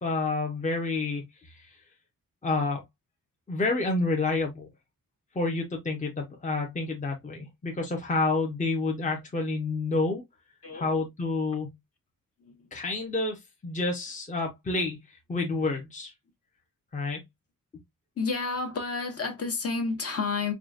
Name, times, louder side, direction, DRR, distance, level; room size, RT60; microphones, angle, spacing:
voice 1, 0.0-1.7 2.4-2.8 3.5-4.7 5.3-10.2 10.7-11.7 12.7-15.0 15.3-16.1 16.9-17.2, left 3 dB, 20° left, 0.8 m, -29 dB
voice 2, 18.2-20.5, left 4 dB, 45° left, 1.0 m, -30 dB
4.8 x 2.4 x 2.4 m
wide cardioid pair, 140°, 35 cm